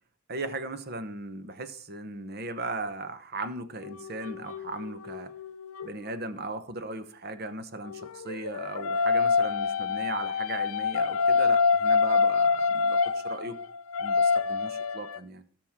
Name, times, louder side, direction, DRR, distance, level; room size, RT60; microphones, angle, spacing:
voice 1, 0.3-5.3 5.8-13.6 14.0-15.4, right 2 dB, 50° right, 1.0 m, -37 dB
sound 1, 3.8-5.9 7.9-15.2, left 5 dB, 85° left, 0.6 m, -26 dB
18.0 x 6.3 x 3.6 m
head